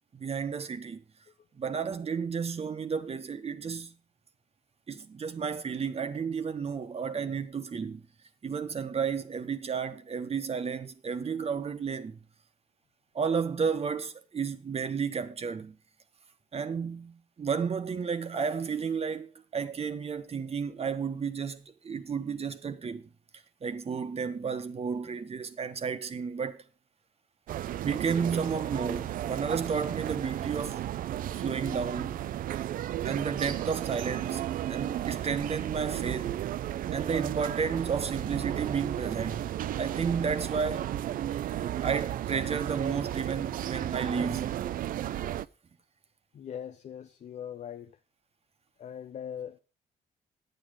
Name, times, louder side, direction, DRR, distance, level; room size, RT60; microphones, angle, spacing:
voice 1, 0.1-1.0 1.6-3.9 4.9-8.0 8.4-12.2 13.1-15.8 16.5-23.0 23.6-26.6 27.8-30.8 31.3-32.2 33.0-34.4 34.7-36.4 36.9-40.9 41.8-44.6, right 6 dB, 45° right, 1.3 m, -32 dB
sound 1, 27.5-45.4, right 12 dB, 75° right, 0.5 m, -34 dB
voice 2, 46.3-48.0 48.8-49.6, left 9 dB, 55° left, 0.6 m, -40 dB
9.0 x 9.0 x 5.1 m
cardioid pair, 80°, 14 cm